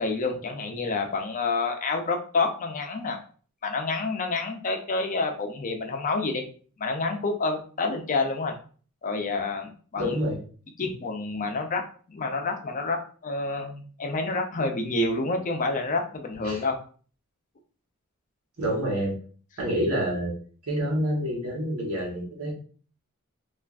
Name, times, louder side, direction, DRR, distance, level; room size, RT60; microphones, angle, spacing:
voice 1, 0.0-3.2 3.6-6.4 6.8-8.6 9.0-10.2 10.8-16.8, left 3 dB, 35° left, 4 dB, 0.5 m, -28 dB
voice 2, 10.0-10.4 10.8-10.9 16.4-16.6 18.6-19.1 19.6-20.3 20.7-22.5, equal, 75° right, -4 dB, 1.1 m, -27 dB
3.3 x 2.4 x 2.4 m, 0.42 s
head